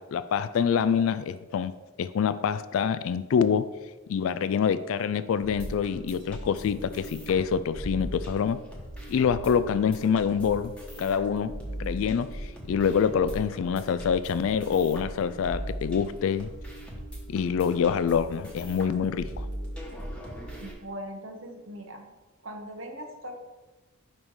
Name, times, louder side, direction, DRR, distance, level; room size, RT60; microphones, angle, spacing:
voice 1, 0.0-1.7 2.0-3.7 4.1-8.6 9.1-16.5 17.3-19.5, left 7 dB, 65° left, 14 dB, 0.3 m, -26 dB
sound 1, 5.4-20.7, right 1 dB, 5° left, 1.2 m, -39 dB
voice 2, 20.6-22.1 22.4-23.3, equal, 60° right, 3 dB, 1.1 m, -40 dB
5.5 x 5.2 x 4.7 m, 1.2 s
head